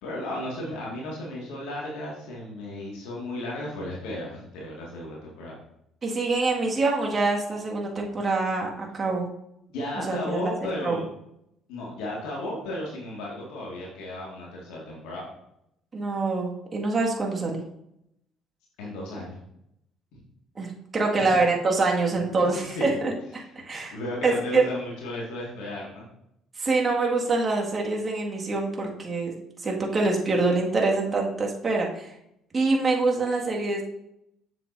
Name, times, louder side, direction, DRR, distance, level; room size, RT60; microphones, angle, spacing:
voice 1, 0.0-5.6 9.7-11.0 11.7-15.3 18.8-19.4 20.1-20.2 21.2-21.3 22.4-23.0 23.7-26.0, left 1 dB, 75° left, -3 dB, 1.9 m, -34 dB
voice 2, 6.0-9.3 10.0-10.5 10.8-11.0 15.9-17.6 20.6-24.0 24.2-24.7 26.6-32.1 32.5-33.8, right 3 dB, 35° right, 0 dB, 1.8 m, -25 dB
7.5 x 7.3 x 2.6 m, 0.78 s
hypercardioid pair, 60°, 0 cm